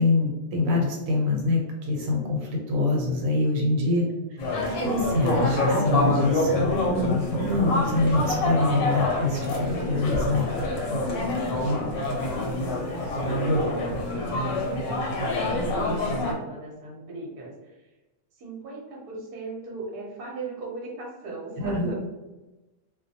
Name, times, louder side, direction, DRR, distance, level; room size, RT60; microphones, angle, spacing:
voice 1, 0.0-4.0 4.8-10.5 21.6-21.9, left 3 dB, 80° right, -1 dB, 1.0 m, -25 dB
voice 2, 4.0-4.5 12.0-13.8 14.1-17.9 18.3-21.9, right 2 dB, 50° right, -3 dB, 0.8 m, -39 dB
sound 1, 4.4-16.3, left 1 dB, 85° left, 1.1 m, -26 dB
2.2 x 2.1 x 2.7 m, 1.1 s
omnidirectional pair, 1.4 m